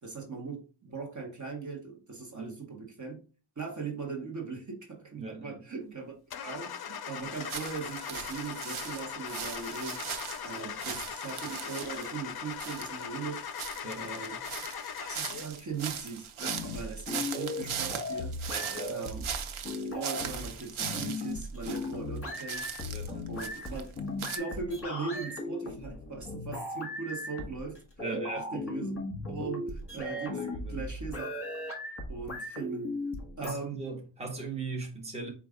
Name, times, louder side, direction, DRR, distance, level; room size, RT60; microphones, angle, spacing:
voice 1, 0.0-3.2 3.6-6.1 6.4-10.0 10.4-13.4 14.0-14.4 15.0-18.4 18.9-19.3 19.8-22.7 23.3-23.8 24.2-27.8 28.0-28.9 29.3-30.4 30.7-31.3 32.1-32.9 33.4-33.8, right 4 dB, 40° right, 1.0 m, -39 dB
voice 2, 5.2-5.6 10.5-11.0 13.8-14.2 18.5-19.0 22.9-23.3 28.0-28.5 30.3-30.9 33.4-35.3, right 3 dB, 15° right, 0.9 m, -39 dB
Car / Engine starting, 6.3-15.6, left 7 dB, 55° left, 0.5 m, -40 dB
sound 1, 7.4-12.2 12.6-21.9 22.2-24.4, right 8 dB, 80° right, 0.7 m, -39 dB
sound 2, 16.4-33.5, left 2 dB, 25° left, 1.3 m, -37 dB
4.4 x 2.4 x 4.8 m
wide cardioid pair, 170°, 48 cm